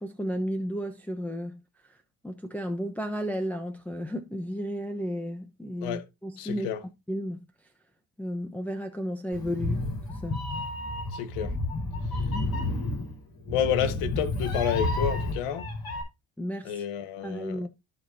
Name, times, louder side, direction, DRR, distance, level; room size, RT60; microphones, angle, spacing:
voice 1, 0.0-1.6 1.9-2.0 2.2-6.7 7.1-7.4 8.2-10.5 16.4-16.8 17.2-17.7, equal, 5° left, 0.9 m, -33 dB
voice 2, 6.4-6.8 11.1-11.5 13.5-15.6 16.6-17.6, left 9 dB, 85° left, 1.1 m, -29 dB
Meow, 9.3-16.0, left 2 dB, 45° left, 4.2 m, -31 dB
14.0 x 5.1 x 2.6 m
cardioid pair, 105°, 49 cm